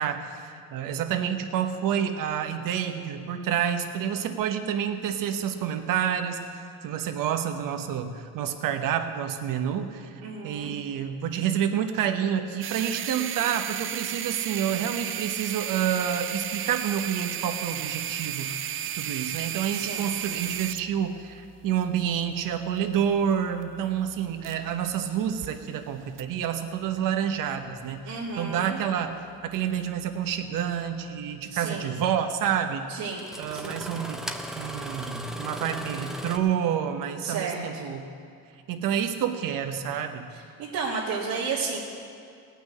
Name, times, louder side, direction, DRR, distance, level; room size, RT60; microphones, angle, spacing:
voice 1, 0.0-6.4 6.8-18.6 18.9-32.9 33.4-34.2 34.6-38.1 38.7-40.3, right 8 dB, 75° right, 7 dB, 1.1 m, -28 dB
voice 2, 10.2-10.8 19.7-20.1 28.0-28.8 31.5-31.9 32.9-33.3 33.5-33.8 37.2-37.8 40.6-41.8, right 5 dB, 90° right, -6 dB, 2.0 m, -32 dB
sound 1, 12.6-24.9 25.2-25.5 26.2-26.3, right 11 dB, 40° right, 0.4 m, -34 dB
Engine starting, 30.8-30.9 32.5-32.6 33.1-36.4, equal, ahead, 0.7 m, -37 dB
18.0 x 6.1 x 8.5 m, 2.5 s
cardioid pair, 130°, 34 cm